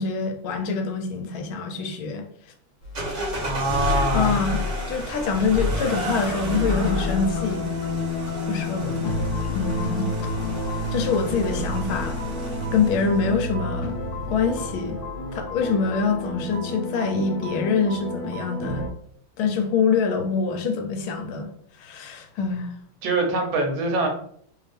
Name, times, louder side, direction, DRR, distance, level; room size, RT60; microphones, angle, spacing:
voice 1, 0.0-2.2 4.1-7.7 8.5-9.2 9.5-10.1 10.9-12.2 12.7-14.0 14.3-15.0 15.3-18.9 19.4-21.5 21.8-22.7, left 5 dB, 85° left, 5 dB, 1.5 m, -25 dB
sound 1, 2.8-14.7, right 1 dB, 30° left, 0.7 m, -42 dB
sound 2, 2.9-13.2, left 2 dB, 45° right, 1.2 m, -31 dB
voice 2, 3.4-4.4 8.8-9.3 23.0-24.1, right 2 dB, 80° right, 3 dB, 1.6 m, -25 dB
sound 3, 6.3-18.9, left 2 dB, 65° left, 0.9 m, -30 dB
3.3 x 3.2 x 3.2 m, 0.62 s
omnidirectional pair, 2.2 m